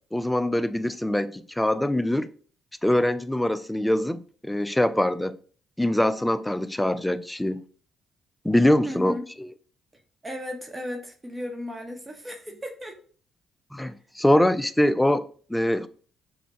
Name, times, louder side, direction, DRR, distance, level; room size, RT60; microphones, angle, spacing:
voice 1, 0.1-2.3 2.8-5.4 5.8-7.6 8.4-9.2 13.7-15.9, left 1 dB, 5° left, 0.3 m, -23 dB
voice 2, 8.8-9.3 10.2-13.0, left 1 dB, 20° right, 0.9 m, -35 dB
5.8 x 2.1 x 2.7 m
supercardioid pair, 60°, 0 cm